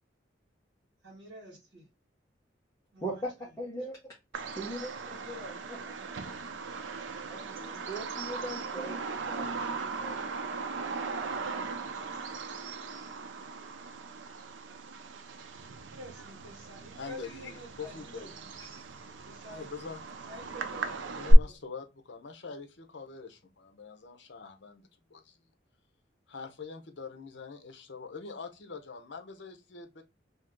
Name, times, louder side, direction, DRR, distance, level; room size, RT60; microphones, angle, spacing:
voice 1, 1.0-1.9 2.9-3.5 15.7-18.5 19.2-19.7 20.3-21.6, equal, 75° right, 1.5 m, -49 dB
voice 2, 3.0-3.3 3.6-4.1 4.6-5.8 6.0-6.1 7.3-9.5 9.9-10.3, right 1 dB, 15° left, 1.0 m, -40 dB
Bird vocalization bird call bird song, 4.3-21.3, right 3 dB, 90° right, 0.5 m, -37 dB
voice 3, 17.0-18.3 18.7-18.9 19.5-20.0 21.1-25.4 26.3-30.0, left 5 dB, 75° left, 0.7 m, -44 dB
2.8 x 2.7 x 3.5 m
head